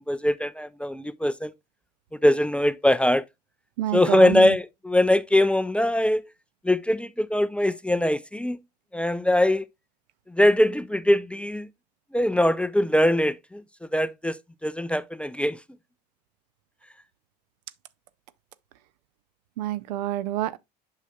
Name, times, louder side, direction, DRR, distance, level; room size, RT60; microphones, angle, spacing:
voice 1, 0.0-1.5 2.2-3.2 3.9-6.2 6.6-8.6 8.9-9.6 10.3-11.7 12.1-13.6 13.9-14.4 14.6-15.6, left 1 dB, 5° left, 0.3 m, -22 dB
voice 2, 3.8-4.6 19.6-20.6, right 13 dB, 80° right, 0.5 m, -28 dB
8.1 x 5.6 x 2.2 m
hypercardioid pair, 80°, 21 cm